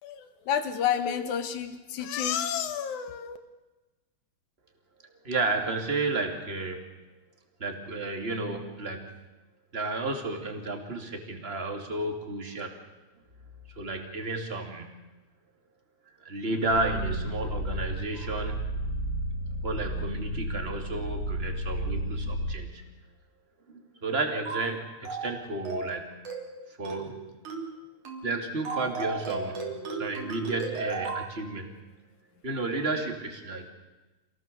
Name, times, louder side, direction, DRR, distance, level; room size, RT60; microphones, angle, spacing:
voice 1, 0.0-3.4, left 8 dB, 90° left, 10 dB, 2.9 m, -30 dB
voice 2, 5.2-6.9 7.6-9.1 9.7-12.7 13.7-14.9 16.2-18.7 19.6-22.8 23.7-26.2 26.7-27.3 28.2-31.7 32.4-33.7, right 3 dB, 20° right, 4 dB, 2.7 m, -32 dB
sound 1, 16.7-22.6, equal, 55° left, 3.0 m, -32 dB
sound 2, 24.5-24.7 25.1-25.3 25.7-25.9 26.3-26.5 26.9-27.1 27.5-27.7 28.1-28.3 28.7-31.3, right 4 dB, 85° right, 4.9 m, -34 dB
27.5 x 18.5 x 7.0 m, 1.1 s
omnidirectional pair, 3.3 m